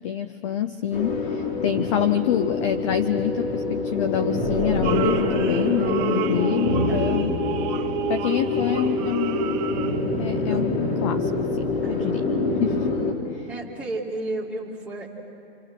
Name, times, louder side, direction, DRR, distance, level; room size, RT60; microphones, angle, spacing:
voice 1, 0.0-7.3 8.1-9.6 10.2-12.2 12.6-12.9 13.3-13.5, left 10 dB, 30° left, 11 dB, 0.5 m, -26 dB
sound 1, 0.9-13.1, left 3 dB, 45° left, 3.8 m, -25 dB
sound 2, 4.8-10.2 10.5-10.6, right 10 dB, 25° right, 1.0 m, -30 dB
voice 2, 6.9-7.3 11.8-12.1 13.5-15.1, right 2 dB, 5° right, -5 dB, 2.6 m, -33 dB
28.0 x 27.0 x 6.3 m, 2.5 s
hypercardioid pair, 150°, 34 cm